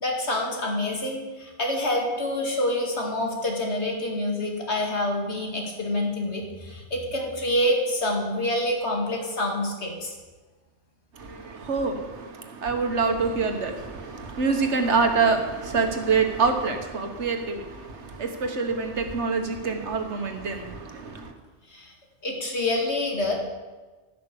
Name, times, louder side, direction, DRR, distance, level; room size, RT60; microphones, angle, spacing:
voice 1, 0.0-10.1 21.7-21.9 22.2-23.3, left 1 dB, 75° left, 0 dB, 2.5 m, -27 dB
voice 2, 11.2-21.3, right 4 dB, 80° right, 5 dB, 1.6 m, -26 dB
15.0 x 6.0 x 6.8 m, 1.3 s
omnidirectional pair, 1.2 m